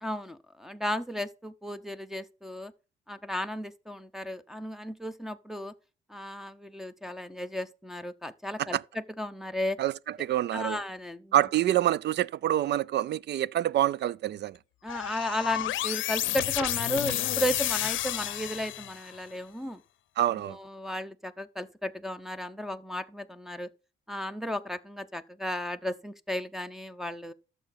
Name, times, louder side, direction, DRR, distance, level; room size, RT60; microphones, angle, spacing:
voice 1, 0.0-2.7 3.1-5.7 6.1-9.8 10.5-11.4 14.8-19.8 20.3-23.7 24.1-27.3, left 1 dB, ahead, 0.9 m, -34 dB
voice 2, 10.2-10.8 11.3-14.6 20.2-20.6, right 12 dB, 60° right, 0.4 m, -26 dB
sound 1, 14.9-19.2, left 14 dB, 75° left, 0.6 m, -31 dB
12.5 x 6.9 x 4.0 m
cardioid pair, 90°, 20 cm